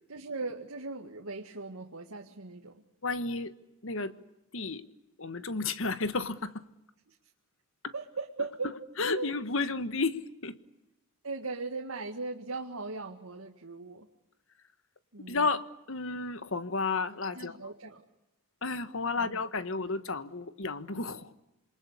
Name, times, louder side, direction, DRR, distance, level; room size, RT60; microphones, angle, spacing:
voice 1, 0.1-2.7 7.9-8.7 9.1-9.3 11.2-14.1 15.1-15.4 17.4-18.0 19.2-19.3, right 3 dB, 80° right, 1.9 m, -38 dB
voice 2, 3.0-3.5 3.8-4.1 4.5-4.8 5.2-6.6 7.8-7.9 9.0-10.6 15.3-17.7 18.6-21.3, left 3 dB, 65° left, 1.3 m, -32 dB
27.5 x 22.0 x 8.3 m
head